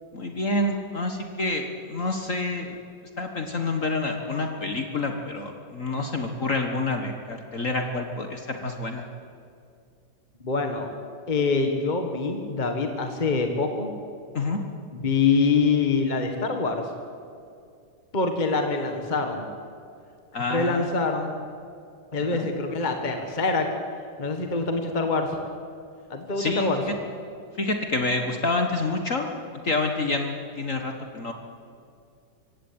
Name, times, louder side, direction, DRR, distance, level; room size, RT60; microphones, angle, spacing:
voice 1, 0.1-2.8 3.2-9.1 14.3-14.6 20.3-20.9 22.3-22.5 26.4-26.9 27.6-29.3 29.6-31.3, left 2 dB, 45° left, 4 dB, 1.8 m, -28 dB
voice 2, 10.4-10.9 11.3-13.9 14.9-16.9 18.1-19.4 20.5-21.3 22.1-23.7 24.2-25.4 26.1-26.8, left 4 dB, 25° left, 4 dB, 1.7 m, -25 dB
24.5 x 16.5 x 8.8 m, 2.4 s
omnidirectional pair, 2.0 m